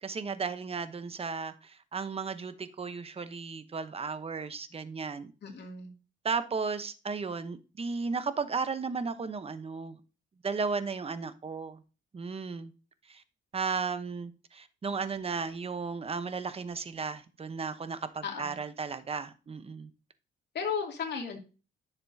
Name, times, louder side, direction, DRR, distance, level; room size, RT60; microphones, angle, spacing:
voice 1, 0.0-5.3 6.2-10.0 10.4-11.8 12.1-12.7 13.1-13.2 13.5-19.9, right 5 dB, 30° right, 0.9 m, -35 dB
voice 2, 5.4-5.9 18.2-18.6 20.5-21.4, left 6 dB, 60° left, 2.6 m, -35 dB
10.5 x 6.8 x 2.7 m
cardioid pair, 90°, 20 cm